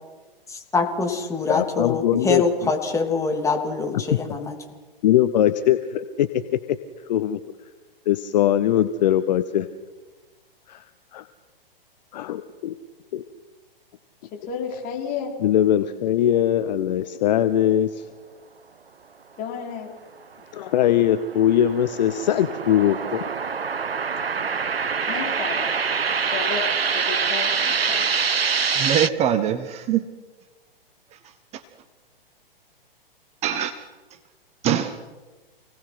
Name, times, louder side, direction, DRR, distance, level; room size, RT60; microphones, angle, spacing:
voice 1, 0.7-4.5, left 3 dB, 10° left, 3 dB, 3.0 m, -24 dB
voice 2, 1.5-2.4 4.1-4.2 5.0-6.3 6.7-6.8 7.1-7.4 8.1-9.7 10.7-10.8 11.1-11.3 12.1-12.7 13.1-13.2 15.4-18.1 20.5-23.2, left 11 dB, 45° left, 12 dB, 1.0 m, -21 dB
voice 3, 14.3-15.3 19.4-19.9 25.1-25.7 26.1-26.6 26.9-28.1, left 7 dB, 30° left, 0 dB, 5.4 m, -32 dB
sound 1, 20.7-29.1, right 6 dB, 80° right, 0.8 m, -25 dB
voice 4, 28.8-30.0 31.5-31.6 33.4-33.7 34.6-35.0, right 9 dB, 20° right, 11 dB, 1.0 m, -23 dB
29.0 x 18.5 x 6.0 m, 1.3 s
figure-of-eight pair, 115°, 29 cm